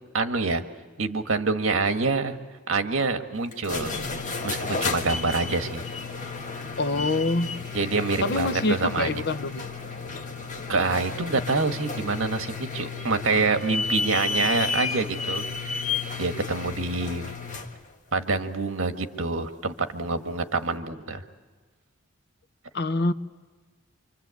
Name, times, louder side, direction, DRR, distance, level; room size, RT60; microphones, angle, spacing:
voice 1, 0.1-0.6 1.0-2.4 2.7-3.9 4.4-5.8 6.9-7.1 7.7-9.2 10.7-15.8 16.2-17.3 18.1-21.2, right 3 dB, 70° right, 7 dB, 1.6 m, -26 dB
sound 1, 3.5-17.8, left 4 dB, 35° left, 1.7 m, -32 dB
voice 2, 6.8-7.5 8.2-9.7 22.7-23.1, left 2 dB, 55° left, 10 dB, 0.9 m, -25 dB
26.0 x 25.5 x 8.3 m, 1.4 s
head